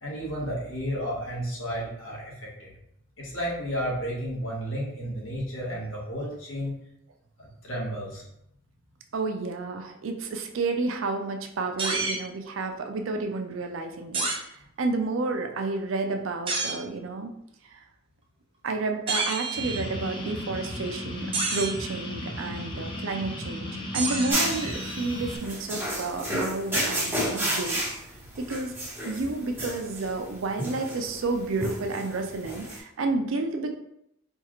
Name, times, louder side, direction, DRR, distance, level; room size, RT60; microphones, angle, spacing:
voice 1, 0.0-2.3 2.6-2.7 3.2-6.8 7.4-8.3 28.3-28.4, equal, 75° left, -4 dB, 1.3 m, -32 dB
voice 2, 9.1-14.5 14.8-17.3 17.7-17.8 18.6-27.8 28.4-28.7 29.0-33.7, right 3 dB, 80° right, 5 dB, 0.5 m, -30 dB
sound 1, 11.8-12.2 14.1-14.4 16.5-16.8 19.1-20.0 21.3-21.9 23.9-25.3, right 3 dB, 30° right, 0.6 m, -30 dB
sound 2, 19.5-25.4, left 1 dB, 25° left, 0.6 m, -35 dB
sound 3, 24.3-32.8, right 1 dB, 10° right, 1.1 m, -31 dB
4.5 x 2.4 x 3.0 m, 0.77 s
head